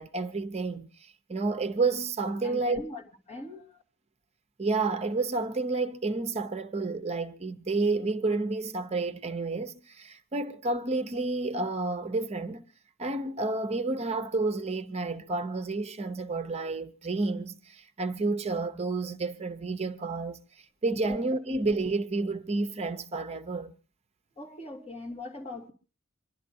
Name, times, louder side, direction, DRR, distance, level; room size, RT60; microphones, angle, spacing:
voice 1, 0.0-2.8 4.6-12.6 13.0-23.7, right 3 dB, 30° right, 0.7 m, -30 dB
voice 2, 2.4-3.8 21.1-21.2 24.4-25.7, left 2 dB, 30° left, 2.6 m, -41 dB
26.0 x 11.5 x 2.7 m
head